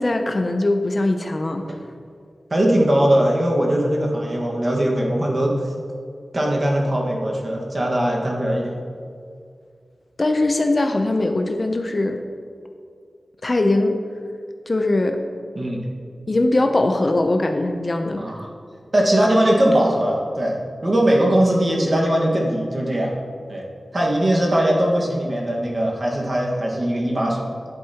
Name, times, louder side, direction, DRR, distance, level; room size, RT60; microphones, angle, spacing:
voice 1, 0.0-1.7 10.2-12.2 13.4-14.0 14.7-15.2 16.3-18.2, left 2 dB, 40° left, 5 dB, 0.6 m, -21 dB
voice 2, 2.5-5.7 6.3-8.7 15.5-15.8 18.2-18.5 18.9-23.1 23.5-23.6 23.9-27.5, right 1 dB, 40° right, -2 dB, 1.5 m, -20 dB
10.5 x 8.5 x 2.9 m, 2.2 s
wide cardioid pair, 105°, 0 cm